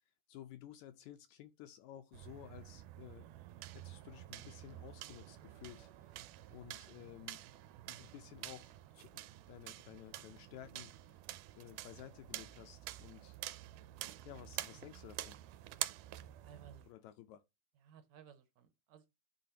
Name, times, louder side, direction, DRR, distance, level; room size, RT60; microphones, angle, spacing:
voice 1, 0.3-3.3 3.7-7.4 7.9-11.2 11.5-13.4 14.2-15.4 16.9-17.4, left 12 dB, 80° left, 1.7 m, -54 dB
sound 1, 2.1-16.9, right 15 dB, 90° right, 2.1 m, -48 dB
voice 2, 16.4-17.1 17.8-19.1, right 7 dB, 70° right, 1.9 m, -59 dB
10.5 x 3.9 x 2.8 m
omnidirectional pair, 3.6 m